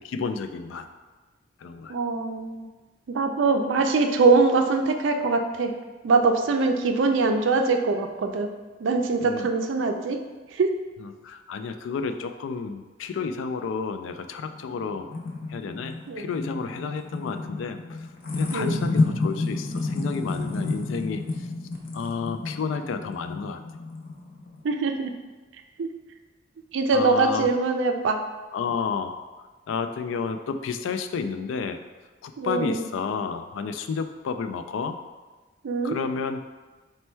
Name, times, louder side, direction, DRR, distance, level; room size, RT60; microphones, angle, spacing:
voice 1, 0.0-0.9 1.6-2.0 9.2-9.5 11.0-15.2 15.5-18.1 18.3-21.5 21.9-23.6 26.9-27.5 28.5-31.8 32.2-35.0 35.8-36.5, left 5 dB, 85° left, 8 dB, 0.3 m, -31 dB
voice 2, 1.9-2.7 3.1-5.7 6.0-8.5 8.8-10.2 10.5-10.7 16.1-16.3 18.5-18.8 24.6-25.1 25.8-25.9 26.7-28.2 32.4-32.8 35.6-36.0, right 4 dB, 80° right, 5 dB, 0.4 m, -23 dB
sound 1, 14.5-24.6, left 3 dB, 50° left, 0.6 m, -30 dB
4.2 x 2.2 x 4.4 m, 1.3 s
head